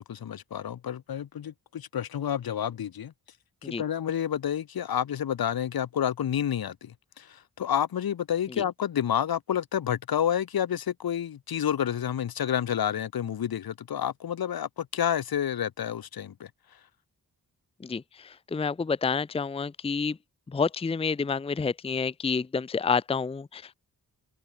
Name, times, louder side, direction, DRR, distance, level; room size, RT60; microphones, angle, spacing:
voice 1, 0.0-3.1 3.6-16.5, left 9 dB, 85° left, 2.9 m, -29 dB
voice 2, 17.8-20.2 20.5-23.7, left 5 dB, 15° left, 0.6 m, -29 dB
wide cardioid pair, 125°, 35 cm